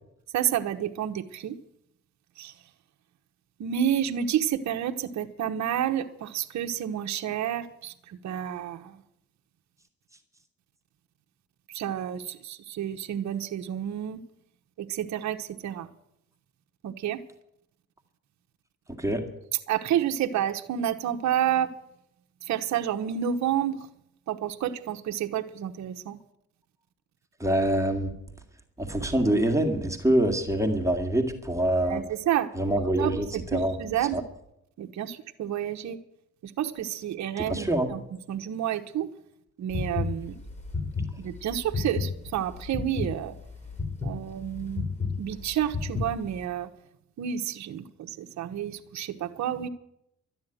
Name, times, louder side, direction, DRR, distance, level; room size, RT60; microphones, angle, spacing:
voice 1, 0.3-1.6 2.4-2.5 3.6-9.0 11.7-14.2 14.8-15.9 16.8-17.2 19.7-21.7 22.5-23.8 24.3-26.2 31.9-32.5 33.0-34.2 34.8-36.0 36.4-38.0 38.3-39.1 39.6-40.3 41.2-43.4 44.0-44.8 45.2-46.7 47.2-49.7, right 10 dB, 65° right, 6 dB, 1.1 m, -30 dB
voice 2, 27.4-28.1 28.8-32.0 32.6-33.3 33.5-33.8 34.1-34.2 37.5-37.9, right 1 dB, 10° right, 4 dB, 2.0 m, -25 dB
sound 1, 39.7-46.4, left 4 dB, 25° left, 4.8 m, -32 dB
12.5 x 9.6 x 9.1 m, 0.78 s
cardioid pair, 90°, 30 cm